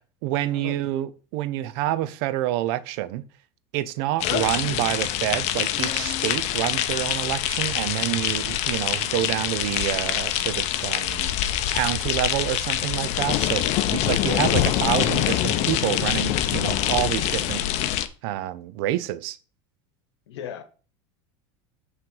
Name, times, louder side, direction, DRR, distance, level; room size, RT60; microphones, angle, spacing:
voice 1, 0.0-3.2 3.7-11.3 11.7-17.6 18.2-19.4, right 14 dB, 65° right, 0.5 m, -27 dB
sound 1, 4.2-18.1, left 12 dB, 55° left, 0.6 m, -25 dB
voice 2, 20.3-20.6, left 9 dB, 85° left, 1.0 m, -36 dB
5.9 x 3.2 x 5.3 m
supercardioid pair, 110°, 14 cm